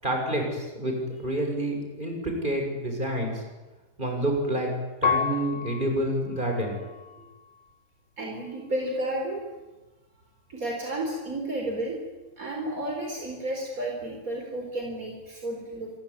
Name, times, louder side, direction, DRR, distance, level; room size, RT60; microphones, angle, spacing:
voice 1, 0.0-0.9 1.2-3.4 4.0-4.7 5.0-6.8, right 1 dB, 30° right, 3 dB, 7.1 m, -28 dB
Piano, 5.0-7.8 8.4-9.1, left 6 dB, 35° left, 0.9 m, -32 dB
voice 2, 8.2-9.4 10.5-12.0 12.4-15.9, right 1 dB, 55° right, 0 dB, 4.8 m, -32 dB
27.5 x 22.0 x 9.9 m, 1.1 s
omnidirectional pair, 1.8 m